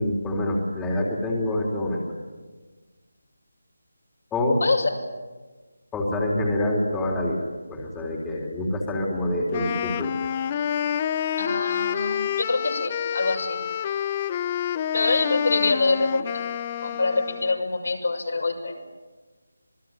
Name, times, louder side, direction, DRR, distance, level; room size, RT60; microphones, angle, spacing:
voice 1, 0.0-2.0 4.3-4.6 5.9-10.1, left 1 dB, 10° left, -2 dB, 3.6 m, -26 dB
Wind instrument woodwind instrument, 9.5-17.6, left 9 dB, 25° left, 0.7 m, -28 dB
voice 2, 11.4-13.6 14.9-16.4 16.8-18.8, left 3 dB, 65° left, 2 dB, 6.3 m, -25 dB
26.5 x 20.5 x 9.2 m, 1.3 s
figure-of-eight pair, 160°, 0 cm